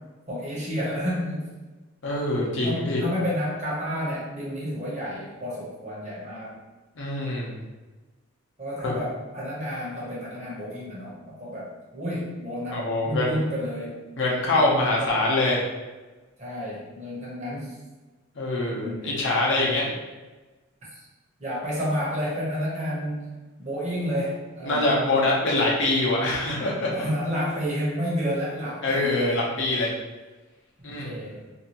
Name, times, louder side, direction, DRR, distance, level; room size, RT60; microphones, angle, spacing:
voice 1, 0.3-1.5 2.6-6.6 8.6-14.0 15.0-15.1 16.4-17.7 18.7-19.1 20.9-21.0 21.4-23.3 23.6-25.0 26.9-29.5 31.0-31.4, equal, 35° right, -6 dB, 0.8 m, -30 dB
voice 2, 2.0-3.0 7.0-7.6 8.8-8.9 12.7-13.4 14.2-15.6 18.4-19.9 24.6-26.9 28.8-29.9 30.8-31.2, left 2 dB, 60° left, -4 dB, 0.7 m, -24 dB
2.7 x 2.4 x 2.9 m, 1.2 s
head